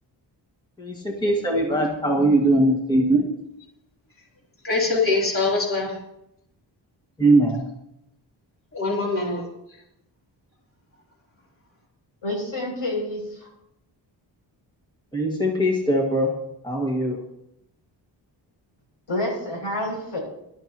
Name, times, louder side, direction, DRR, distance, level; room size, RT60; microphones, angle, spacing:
voice 1, 0.8-3.2 7.2-7.6 15.1-16.3 16.6-17.2, right 1 dB, 10° left, -1 dB, 1.9 m, -20 dB
voice 2, 4.6-6.0 8.7-9.4, left 3 dB, 30° left, -3 dB, 3.5 m, -23 dB
voice 3, 12.2-13.5 19.1-20.2, left 1 dB, 85° left, -1 dB, 6.8 m, -28 dB
20.0 x 12.5 x 3.0 m, 0.82 s
wide cardioid pair, 150°, 44 cm